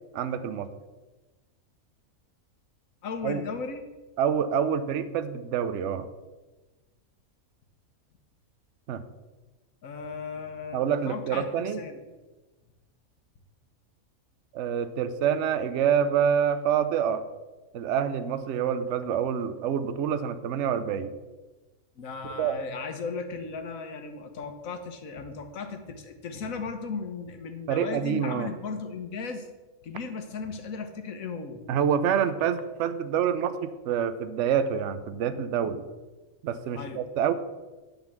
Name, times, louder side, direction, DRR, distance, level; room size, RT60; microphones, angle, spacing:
voice 1, 0.1-0.7 3.2-3.4 4.2-6.1 8.9-9.0 10.7-11.8 14.5-17.2 17.7-21.1 22.4-22.6 27.7-28.5 31.7-35.8 36.4-37.3, right 8 dB, 65° right, 11 dB, 0.9 m, -27 dB
voice 2, 3.0-3.8 9.8-11.4 11.8-12.0 22.0-29.5 29.8-31.6 35.6-35.8 36.7-37.0, left 4 dB, 70° left, 6 dB, 1.4 m, -36 dB
10.5 x 4.0 x 7.2 m, 1.2 s
omnidirectional pair, 1.5 m